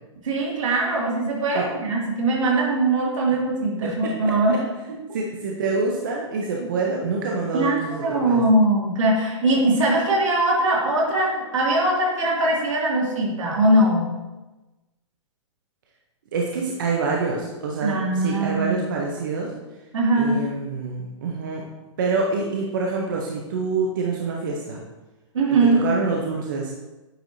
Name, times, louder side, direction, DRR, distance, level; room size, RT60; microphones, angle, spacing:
voice 1, 0.2-4.5 4.9-5.0 7.5-14.0 17.8-18.8 19.9-20.4 25.3-25.8, right 2 dB, 75° right, -3 dB, 2.2 m, -21 dB
voice 2, 4.2-4.6 5.1-8.4 16.3-19.5 20.2-21.6 22.0-24.8 25.5-26.7, right 4 dB, 40° right, -1 dB, 0.7 m, -26 dB
8.9 x 4.7 x 2.7 m, 1.1 s
hypercardioid pair, 180°, 16 cm